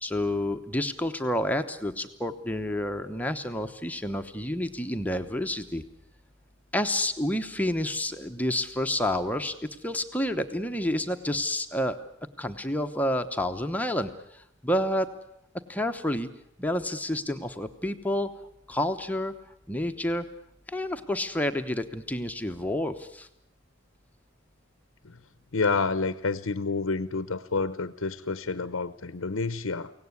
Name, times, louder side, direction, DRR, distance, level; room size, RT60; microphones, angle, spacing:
voice 1, 0.0-5.8 6.7-9.6 9.8-12.0 12.4-15.1 15.7-16.3 16.6-18.3 18.7-19.3 19.7-20.3 20.7-23.3, left 1 dB, 5° left, 6 dB, 0.9 m, -29 dB
voice 2, 25.5-29.9, left 4 dB, 75° left, 14 dB, 0.8 m, -29 dB
24.0 x 17.5 x 9.7 m, 0.79 s
head